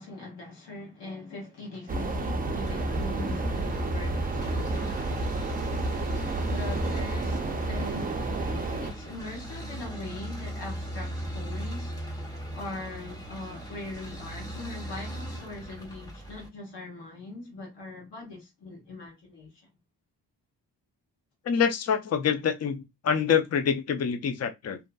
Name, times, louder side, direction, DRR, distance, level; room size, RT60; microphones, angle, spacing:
voice 1, 0.0-5.1 6.5-7.4 7.7-8.1 8.8-11.9 12.5-19.6, left 2 dB, 85° left, 1.0 m, -41 dB
sound 1, 1.9-8.9, right 2 dB, 20° right, 0.4 m, -31 dB
sound 2, 2.1-16.5, right 1 dB, 10° left, 1.1 m, -37 dB
voice 2, 21.4-24.8, left 7 dB, 40° left, 0.5 m, -26 dB
2.7 x 2.4 x 2.2 m
cardioid pair, 80°, 40 cm